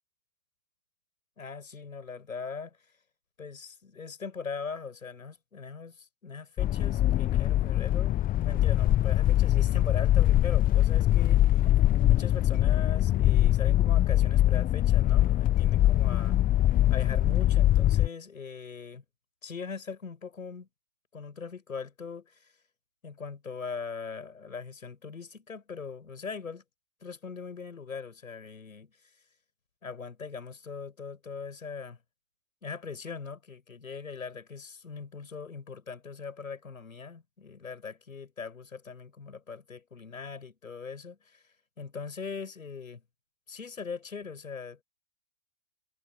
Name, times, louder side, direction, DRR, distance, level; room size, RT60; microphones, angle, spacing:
voice 1, 1.4-2.8 3.4-11.6 12.0-16.4 16.9-19.0 19.4-20.7 21.1-22.5 23.0-26.6 27.0-28.9 29.8-32.0 32.6-41.4 41.8-43.0 43.5-44.8, left 5 dB, 80° left, 6.1 m, -40 dB
sound 1, 6.6-18.1, left 13 dB, 20° left, 0.9 m, -23 dB
figure-of-eight pair, 105°, 40 cm